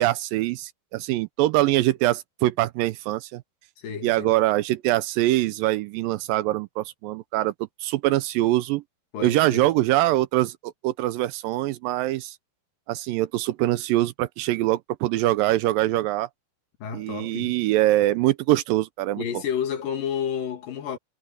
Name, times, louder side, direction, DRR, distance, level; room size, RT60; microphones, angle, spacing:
voice 1, 0.0-3.4 4.0-7.5 7.8-8.8 9.2-12.4 12.9-16.3 16.9-19.2, right 16 dB, 80° right, 2.2 m, -23 dB
voice 2, 3.8-4.3 9.1-9.7 16.8-17.6 19.2-21.0, left 8 dB, 65° left, 3.5 m, -30 dB
omnidirectional pair, 4.2 m